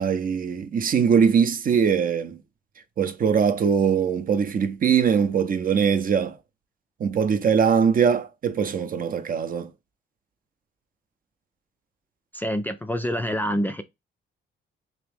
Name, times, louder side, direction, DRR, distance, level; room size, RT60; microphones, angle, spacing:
voice 1, 0.0-2.4 3.0-6.4 7.0-9.7, right 7 dB, 45° right, 0.6 m, -21 dB
voice 2, 12.3-13.8, equal, 10° left, 0.4 m, -26 dB
3.5 x 3.0 x 3.3 m
cardioid pair, 90°, 20 cm